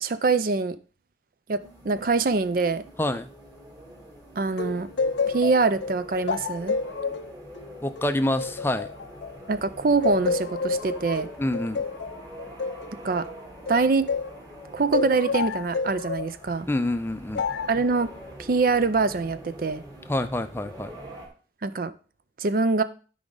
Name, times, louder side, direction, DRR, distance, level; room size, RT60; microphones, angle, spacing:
voice 1, 0.0-0.8 1.5-2.8 4.4-4.9 5.2-6.8 9.5-11.3 13.0-13.3 13.7-14.1 14.7-16.7 17.7-18.1 18.4-19.8 21.6-21.9 22.4-22.8, right 4 dB, 50° right, 0.5 m, -24 dB
sound 1, 1.6-21.3, equal, 25° right, 3.0 m, -45 dB
voice 2, 3.0-3.3 7.8-8.9 11.4-11.8 16.7-17.4 20.1-20.9, left 1 dB, 10° left, 0.4 m, -27 dB
sound 2, 4.6-9.6 10.0-14.4 14.9-16.4 17.4-17.8, left 4 dB, 75° left, 0.4 m, -30 dB
12.5 x 5.1 x 3.8 m
head